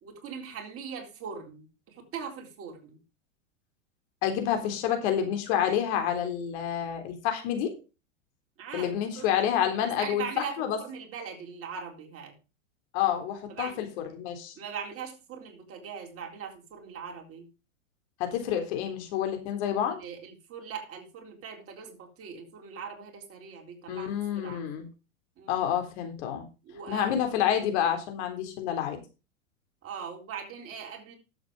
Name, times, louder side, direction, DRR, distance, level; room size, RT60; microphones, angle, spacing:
voice 1, 0.0-3.0 8.6-8.9 9.1-9.3 9.6-12.3 13.5-13.8 14.6-17.5 20.0-24.7 25.4-25.6 26.6-27.2 29.8-31.2, right 6 dB, 35° right, 2 dB, 4.0 m, -41 dB
voice 2, 4.2-7.7 8.7-10.3 10.6-10.8 12.9-13.9 14.1-14.5 18.2-20.0 23.9-24.9 25.5-26.4 26.9-29.0, left 9 dB, 55° left, 5 dB, 3.6 m, -28 dB
12.0 x 7.9 x 4.9 m, 0.31 s
hypercardioid pair, 105°, 39 cm